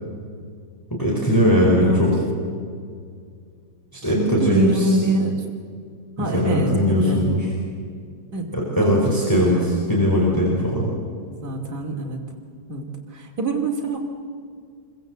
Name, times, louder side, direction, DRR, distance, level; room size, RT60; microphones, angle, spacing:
voice 1, 1.0-2.1 3.9-4.9 6.2-7.5 8.5-10.9, equal, 10° left, -4 dB, 5.3 m, -20 dB
voice 2, 4.0-5.4 6.2-7.2 8.3-8.5 8.8-9.8 11.2-12.2 12.7-14.0, right 2 dB, 55° right, -2 dB, 3.1 m, -25 dB
27.0 x 24.0 x 8.1 m, 2.2 s
omnidirectional pair, 2.1 m